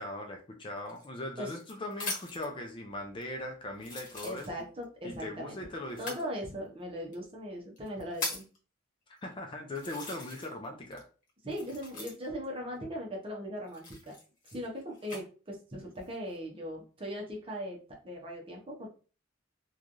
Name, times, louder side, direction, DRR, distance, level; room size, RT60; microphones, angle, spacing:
voice 1, 0.0-4.5 5.0-6.3 9.2-11.1, left 1 dB, 25° left, 3 dB, 0.4 m, -40 dB
sound 1, 0.8-2.5 3.2-3.3 3.8-4.8 5.9-6.3 7.1-7.2 7.8-8.6 9.2-9.3 9.7-10.6 10.9-12.4 13.7-15.2 15.9-16.4, left 3 dB, 40° left, 1.1 m, -41 dB
voice 2, 4.2-5.6 6.0-8.5 11.4-14.1 14.5-17.8 18.0-18.9, equal, 30° right, -1 dB, 0.8 m, -39 dB
3.1 x 2.3 x 2.5 m, 0.36 s
head